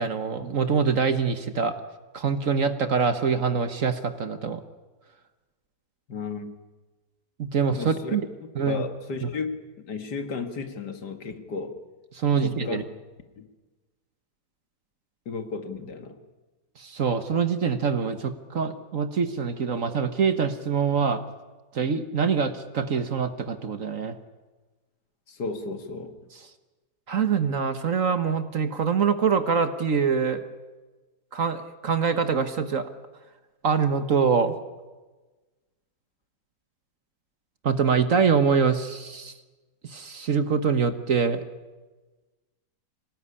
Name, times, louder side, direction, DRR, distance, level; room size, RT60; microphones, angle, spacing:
voice 1, 0.0-1.7 2.1-4.6 7.4-8.2 8.6-8.8 12.2-12.8 16.8-21.2 21.7-24.1 27.1-30.4 31.3-32.9 33.6-34.5 37.6-39.3 39.8-41.4, right 6 dB, 50° right, 10 dB, 1.4 m, -24 dB
voice 2, 6.1-6.6 7.8-11.8 12.4-12.9 13.4-13.5 15.3-16.2 25.3-26.2, left 4 dB, 65° left, 8 dB, 2.3 m, -34 dB
25.0 x 18.5 x 9.8 m, 1.2 s
omnidirectional pair, 2.0 m